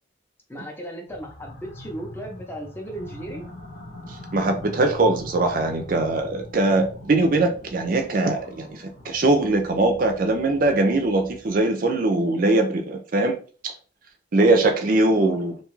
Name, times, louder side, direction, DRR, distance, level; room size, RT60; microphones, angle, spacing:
voice 1, 0.5-3.5, right 1 dB, 10° left, 1 dB, 0.5 m, -36 dB
sound 1, 1.1-11.6, left 1 dB, 55° left, 1.0 m, -42 dB
voice 2, 4.1-13.4 13.6-13.7 14.3-15.6, right 2 dB, 45° right, 5 dB, 0.4 m, -21 dB
2.6 x 2.3 x 3.0 m, 0.38 s
head